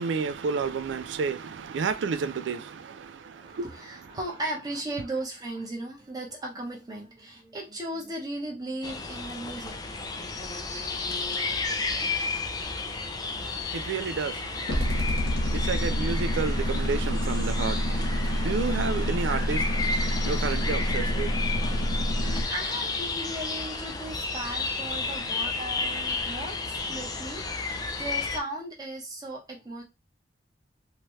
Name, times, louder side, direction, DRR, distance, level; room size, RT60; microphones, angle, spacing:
voice 1, 0.0-4.2 13.3-21.9, right 5 dB, 75° right, 0.4 m, -32 dB
voice 2, 3.3-9.8 22.2-29.8, right 1 dB, 20° right, 0.9 m, -37 dB
sound 1, 8.8-28.4, left 3 dB, 20° left, 0.3 m, -32 dB
sound 2, 14.7-22.4, equal, 60° left, 1.0 m, -27 dB
2.8 x 2.3 x 3.0 m
head